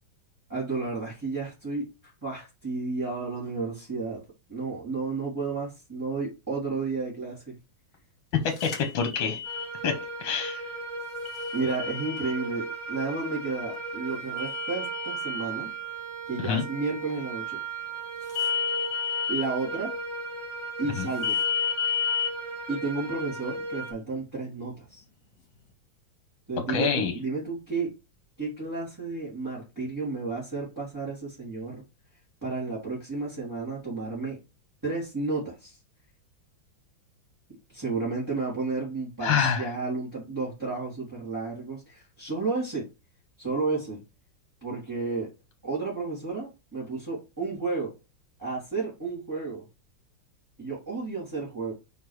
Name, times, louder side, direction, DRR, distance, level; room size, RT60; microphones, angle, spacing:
voice 1, 0.5-1.9 2.2-4.2 4.5-7.6 11.5-15.7 16.3-17.6 19.3-19.9 20.8-21.4 22.7-25.0 26.5-27.9 28.4-31.8 32.4-34.4 34.8-35.8 37.7-42.9 43.4-44.0 44.6-45.3 45.6-47.9 48.4-49.6 50.6-51.7, right 3 dB, 10° right, -7 dB, 2.5 m, -32 dB
voice 2, 8.4-9.4 9.8-9.9 10.2-10.6 16.4-16.6 21.0-21.1 26.7-27.1 39.2-39.7, left 6 dB, 75° left, 6 dB, 1.8 m, -26 dB
sound 1, 8.6-9.7 11.3-12.4 14.4-15.4 18.3-19.4 21.2-22.3, left 8 dB, 60° left, 2.2 m, -30 dB
sound 2, 9.4-23.9, right 4 dB, 35° right, 2.8 m, -36 dB
5.3 x 3.9 x 4.7 m, 0.27 s
omnidirectional pair, 2.2 m